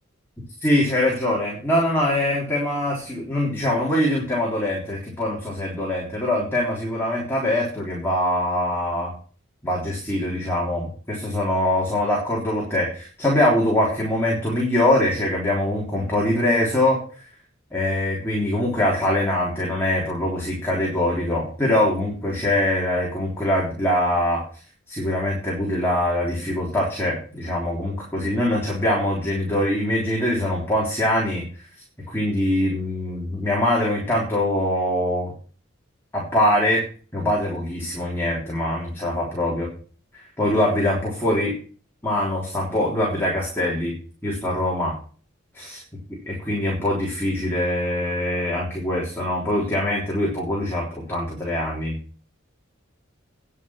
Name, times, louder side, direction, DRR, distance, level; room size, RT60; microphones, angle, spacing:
voice 1, 0.6-9.1 9.6-17.0 17.7-24.4 24.9-31.4 32.1-35.3 36.1-36.8 37.1-39.7 40.1-41.6 42.0-44.0 44.2-44.9 46.3-52.0, left 1 dB, 10° left, -4 dB, 3.5 m, -23 dB
10.0 x 7.7 x 6.0 m, 0.40 s
head